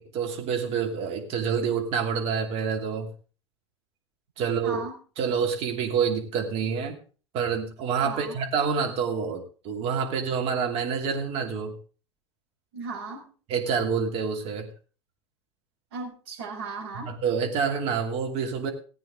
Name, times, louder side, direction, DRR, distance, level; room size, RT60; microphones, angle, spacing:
voice 1, 0.1-3.1 4.4-4.8 5.2-7.0 7.3-11.8 13.5-14.7 17.0-18.7, right 6 dB, 40° right, 3 dB, 2.7 m, -27 dB
voice 2, 4.6-4.9 8.0-8.3 12.7-13.2 15.9-17.1, right 4 dB, 60° right, -2 dB, 6.5 m, -36 dB
18.0 x 8.9 x 3.7 m, 0.38 s
figure-of-eight pair, 80°, 15 cm